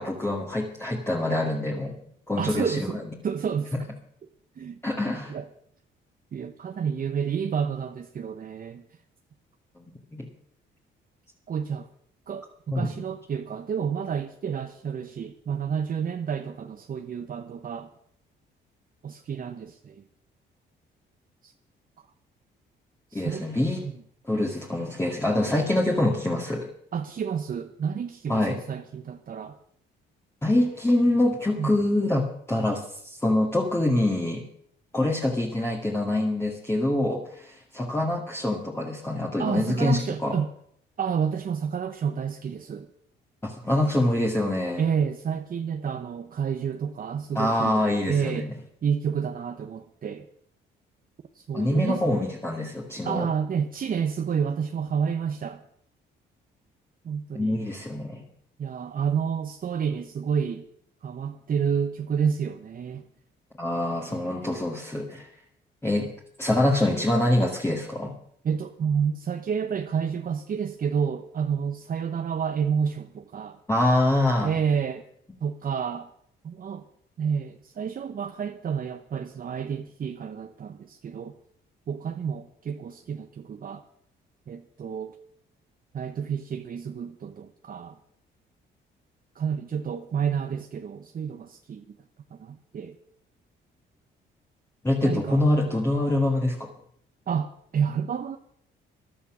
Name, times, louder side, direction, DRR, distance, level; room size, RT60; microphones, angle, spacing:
voice 1, 0.0-1.9 2.3-2.9 4.8-5.3 9.8-9.9 10.1-10.3 12.7-13.0 23.1-23.8 24.3-26.7 28.3-28.6 30.4-34.4 34.9-40.3 43.4-44.8 47.4-48.5 51.5-53.3 57.3-58.2 63.6-65.3 65.8-66.1 66.4-68.1 73.7-74.5 94.8-96.7, left 1 dB, 10° left, -2 dB, 2.1 m, -25 dB
voice 2, 2.4-3.9 4.6-4.8 5.3-5.5 6.3-8.8 11.5-11.9 12.3-17.9 19.0-20.0 21.4-21.5 23.1-23.5 23.8-24.0 26.9-29.6 31.6-31.7 39.4-40.5 41.0-42.9 44.8-48.5 48.8-50.3 51.3-52.2 53.0-55.6 57.0-57.6 58.6-60.7 61.0-63.0 68.4-73.6 74.4-75.1 75.4-76.1 76.4-76.8 77.2-81.4 81.9-83.8 84.5-85.2 85.9-88.0 89.3-92.0 92.3-93.0 95.0-95.4 97.3-98.4, right 7 dB, 45° right, 7 dB, 0.9 m, -29 dB
14.0 x 11.0 x 6.2 m, 0.68 s
cardioid pair, 90°, 20 cm